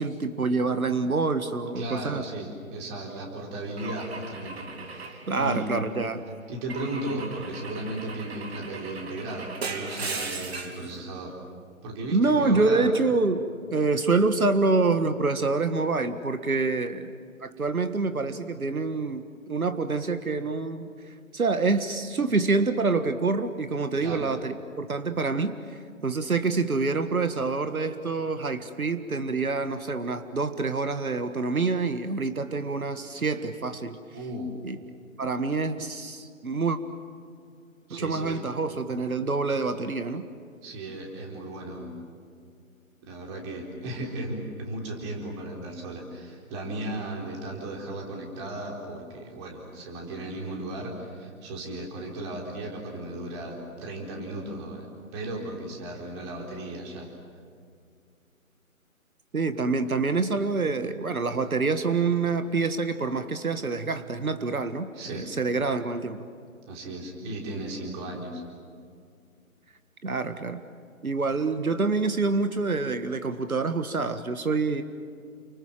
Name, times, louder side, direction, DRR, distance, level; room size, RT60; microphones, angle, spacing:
voice 1, 0.0-2.2 5.3-6.2 12.1-17.1 17.4-34.0 34.6-34.8 35.2-36.8 37.9-40.3 59.3-66.3 70.0-70.6 71.0-74.8, right 3 dB, 80° right, 10 dB, 1.7 m, -26 dB
voice 2, 1.8-5.8 6.5-11.4 11.8-12.9 24.0-24.3 34.1-34.5 37.9-38.4 40.6-41.9 43.0-57.1 64.9-65.3 66.7-68.4, right 1 dB, 20° right, 0 dB, 4.2 m, -35 dB
Car / Engine / Glass, 3.8-6.0 6.7-10.9, right 4 dB, 45° right, 3.1 m, -38 dB
29.5 x 24.5 x 7.6 m, 2.3 s
figure-of-eight pair, 150°, 42 cm